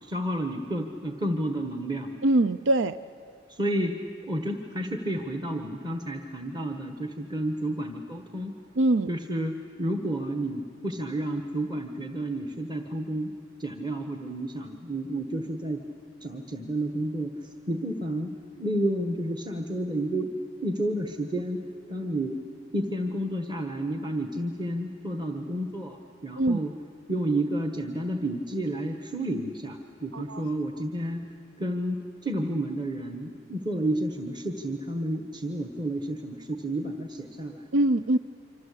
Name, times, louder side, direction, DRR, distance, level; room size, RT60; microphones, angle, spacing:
voice 1, 0.0-2.1 3.5-4.0 4.3-8.5 9.1-13.3 13.6-15.8 16.2-20.3 20.6-22.4 22.7-26.7 27.1-31.2 31.6-37.6, right 1 dB, 20° right, 5 dB, 1.3 m, -31 dB
voice 2, 2.2-3.0 8.8-9.1 26.4-26.6 30.1-30.4 37.7-38.2, right 1 dB, 90° right, 12 dB, 0.6 m, -23 dB
27.0 x 26.0 x 8.5 m, 2.7 s
head